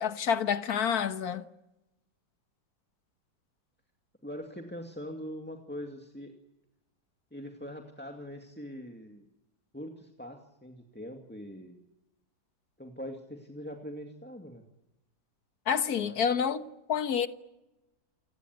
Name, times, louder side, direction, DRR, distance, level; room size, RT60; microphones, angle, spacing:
voice 1, 0.0-1.4 15.7-17.3, left 7 dB, 55° left, 1.6 m, -28 dB
voice 2, 4.2-6.3 7.3-9.3 9.7-11.8 12.8-14.6 15.9-16.2, equal, 5° left, 2.1 m, -42 dB
28.5 x 17.5 x 9.6 m
omnidirectional pair, 2.0 m